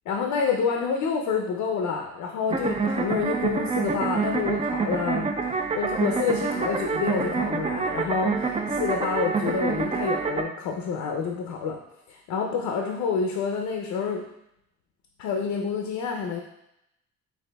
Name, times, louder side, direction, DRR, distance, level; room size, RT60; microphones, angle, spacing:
voice 1, 0.1-11.8 12.1-14.2 15.2-16.4, left 6 dB, 80° left, 2 dB, 0.6 m, -28 dB
sound 1, 2.5-10.4, right 5 dB, 20° right, 0.4 m, -27 dB
7.6 x 2.7 x 2.2 m, 0.82 s
cardioid pair, 90°, 30 cm